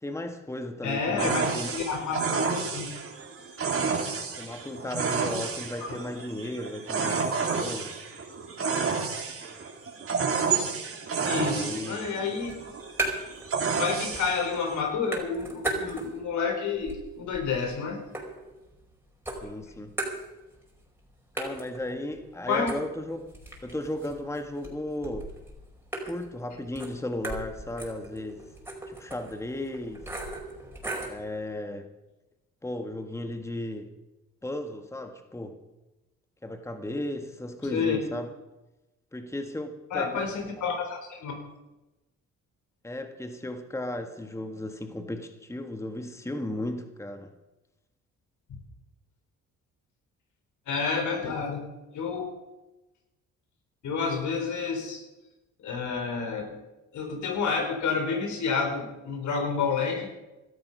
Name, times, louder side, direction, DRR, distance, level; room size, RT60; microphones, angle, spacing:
voice 1, 0.0-1.8 4.4-7.9 11.5-12.0 19.4-19.9 21.3-23.3 23.6-25.3 26.0-28.4 28.9-30.1 31.1-31.9 32.6-33.9 34.4-35.6 36.4-38.3 39.1-40.3 42.8-47.3 51.2-51.3, left 1 dB, 10° left, 6 dB, 1.5 m, -35 dB
voice 2, 0.8-1.4 1.7-2.9 5.8-6.0 11.3-12.5 13.7-18.0 22.5-22.7 37.7-38.0 39.9-41.4 48.5-48.6 50.7-51.6 51.9-52.2 53.8-55.0 55.6-56.5 56.9-60.1, left 5 dB, 75° left, 3 dB, 4.5 m, -29 dB
sound 1, 1.2-14.8, right 5 dB, 50° right, 3.4 m, -30 dB
sound 2, 12.4-13.5 13.8-14.5 14.7-16.3 16.7-18.9 19.3-20.7 21.0-21.1 21.4-31.2, right 2 dB, 5° right, 5.1 m, -37 dB
17.0 x 13.0 x 5.5 m, 1.0 s
cardioid pair, 90°, 30 cm